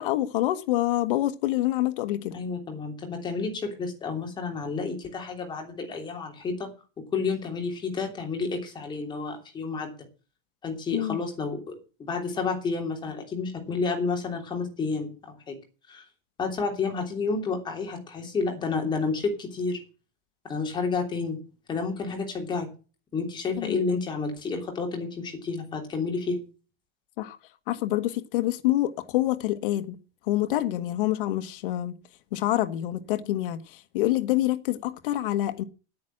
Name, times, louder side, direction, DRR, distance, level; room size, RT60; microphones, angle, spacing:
voice 1, 0.0-2.4 10.9-11.2 23.6-23.8 27.2-27.4 27.7-30.0 30.3-31.9 32.3-35.6, left 15 dB, 65° left, 1.3 m, -26 dB
voice 2, 2.3-6.7 7.1-9.9 10.6-15.6 15.9-16.0 16.4-19.8 20.4-21.4 21.7-22.7 23.1-26.4, left 4 dB, 15° left, 3.2 m, -30 dB
9.8 x 9.4 x 7.7 m
supercardioid pair, 170°, 29 cm